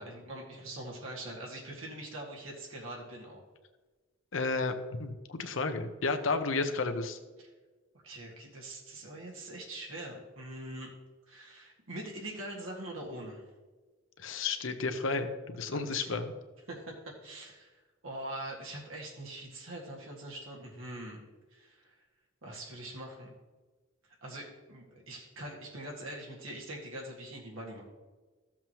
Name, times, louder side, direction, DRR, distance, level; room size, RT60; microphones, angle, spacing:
voice 1, 0.0-3.4 7.4-7.5 8.0-10.9 11.3-13.5 15.7-16.2 16.7-16.9 17.2-21.2 21.5-22.0 22.4-23.3 24.2-27.8, right 1 dB, 90° right, -2 dB, 1.8 m, -43 dB
voice 2, 4.3-4.7 5.0-7.2 14.2-16.3, left 3 dB, 75° left, 7 dB, 0.9 m, -32 dB
14.0 x 7.3 x 3.0 m, 1.3 s
head